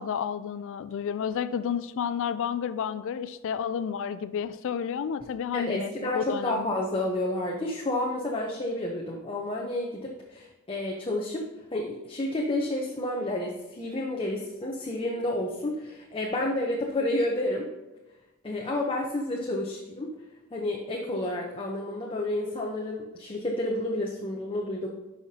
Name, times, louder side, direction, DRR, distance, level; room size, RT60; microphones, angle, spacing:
voice 1, 0.0-6.7, left 7 dB, 65° left, 14 dB, 0.3 m, -31 dB
voice 2, 5.5-11.4 11.7-17.7 18.4-20.1 20.5-24.9, left 1 dB, 25° left, -1 dB, 0.8 m, -30 dB
11.0 x 5.7 x 2.8 m, 1.1 s
head